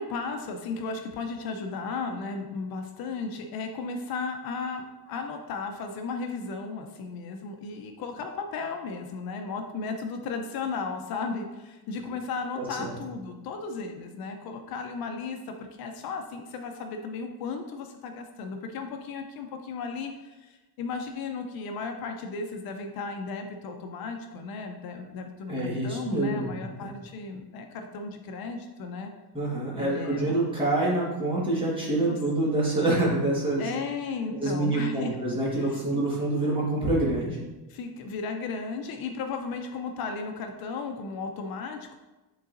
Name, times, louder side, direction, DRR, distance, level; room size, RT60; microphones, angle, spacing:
voice 1, 0.0-29.1 29.8-30.3 32.1-32.2 33.6-35.2 35.5-35.8 37.7-41.9, left 4 dB, 60° left, 4 dB, 0.6 m, -35 dB
voice 2, 12.5-12.9 25.5-26.5 26.8-26.9 29.3-33.7 34.3-37.4, right 2 dB, 15° right, -6 dB, 1.5 m, -26 dB
9.3 x 3.9 x 2.5 m, 1.1 s
cardioid pair, 180°, 40 cm